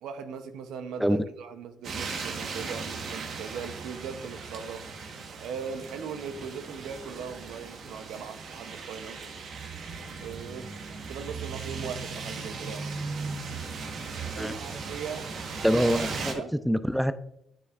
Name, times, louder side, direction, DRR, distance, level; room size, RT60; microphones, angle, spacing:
voice 1, 0.0-4.8 5.4-9.2 10.2-12.9 14.4-15.3 16.3-16.5, right 6 dB, 85° right, 8 dB, 0.7 m, -39 dB
sound 1, 1.8-16.3, right 4 dB, 65° right, 1.2 m, -37 dB
voice 2, 15.6-16.3 16.7-17.1, equal, ahead, 12 dB, 0.4 m, -24 dB
9.2 x 6.5 x 2.4 m, 0.75 s
cardioid pair, 90°, 0 cm